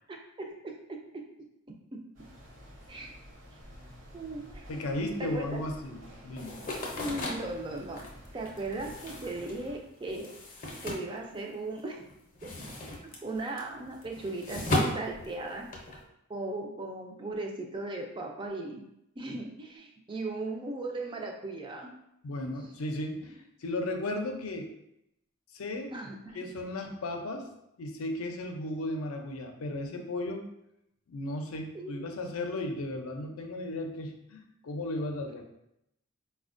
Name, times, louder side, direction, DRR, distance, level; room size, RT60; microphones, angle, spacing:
voice 1, 0.1-1.0 1.7-2.0 2.9-3.1 4.1-4.8 5.2-5.6 7.0-8.0 8.3-10.3 10.8-12.0 12.4-12.7 13.2-15.7 16.3-18.8 19.2-21.9 25.9-26.4 31.7-32.1, right 2 dB, 25° right, 2 dB, 0.3 m, -37 dB
sound 1, 2.1-9.8, equal, 60° right, 0.9 m, -51 dB
voice 2, 4.7-6.6 22.2-24.7 25.5-25.9 26.3-27.5 27.8-30.5 31.1-35.4, left 1 dB, 90° left, 4 dB, 0.5 m, -35 dB
sound 2, 6.4-11.8 12.1-16.0, left 1 dB, 40° left, 0.6 m, -36 dB
4.1 x 2.2 x 2.5 m, 0.81 s
head